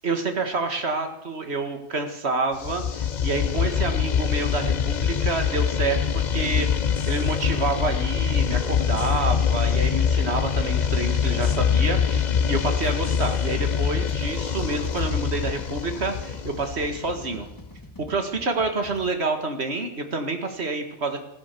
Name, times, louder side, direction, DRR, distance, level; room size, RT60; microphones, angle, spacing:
voice 1, 0.0-17.5 18.1-21.2, right 3 dB, 70° right, 6 dB, 2.1 m, -28 dB
sound 1, 2.6-17.4, left 7 dB, 45° left, 0.8 m, -24 dB
sound 2, 11.1-19.1, left 1 dB, 20° left, 1.4 m, -46 dB
15.0 x 13.0 x 6.9 m, 0.86 s
omnidirectional pair, 1.1 m